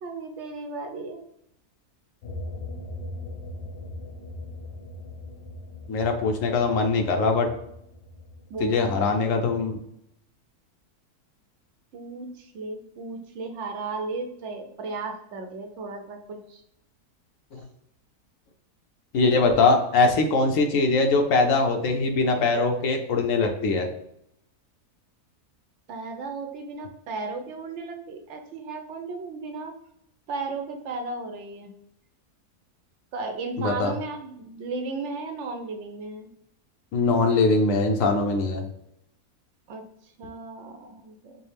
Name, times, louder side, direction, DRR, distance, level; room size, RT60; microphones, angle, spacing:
voice 1, 0.0-1.2 8.5-8.9 9.3-9.7 11.9-16.6 25.9-29.7 30.3-31.7 33.1-36.3 39.7-39.8 40.2-41.3, right 3 dB, 70° right, 4 dB, 0.7 m, -35 dB
sound 1, 2.2-9.1, left 1 dB, 85° left, 1.3 m, -40 dB
voice 2, 5.9-7.5 8.6-9.8 17.5-17.6 19.1-23.9 33.6-33.9 36.9-38.6, left 3 dB, 65° left, 4 dB, 0.9 m, -22 dB
5.0 x 2.0 x 3.2 m, 0.75 s
omnidirectional pair, 1.6 m